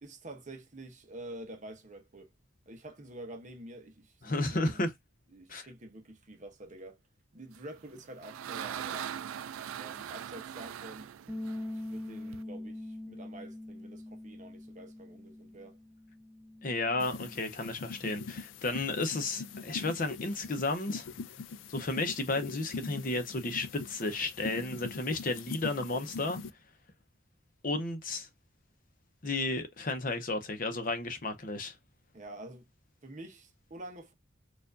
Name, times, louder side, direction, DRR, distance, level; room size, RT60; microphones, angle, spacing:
voice 1, 0.0-2.3 2.7-4.2 4.5-4.9 5.3-7.0 7.3-9.1 9.8-11.1 11.7-15.8 32.1-32.7 33.0-34.1, right 1 dB, 40° right, 0.8 m, -47 dB
voice 2, 4.2-4.9 5.5-5.7 16.6-21.1 21.7-26.4 27.6-28.3 29.2-31.8, left 2 dB, 45° left, 0.7 m, -33 dB
sound 1, 7.7-12.4, right 9 dB, 85° right, 0.3 m, -41 dB
sound 2, 11.3-17.5, left 1 dB, 5° right, 0.8 m, -43 dB
sound 3, 17.0-26.5, left 4 dB, 70° left, 0.4 m, -43 dB
4.4 x 2.5 x 2.5 m
head